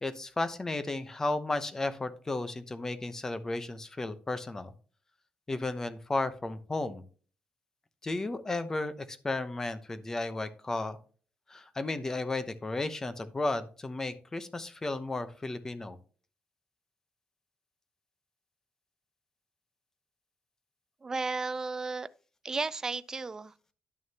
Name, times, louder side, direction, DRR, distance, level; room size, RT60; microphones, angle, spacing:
voice 1, 0.0-4.7 5.5-7.0 8.0-11.0 11.5-16.0, left 2 dB, 15° left, 0.7 m, -34 dB
voice 2, 21.0-22.1 22.4-23.7, right 3 dB, 20° right, 0.3 m, -34 dB
11.0 x 6.4 x 2.8 m
cardioid pair, 160°, 3 cm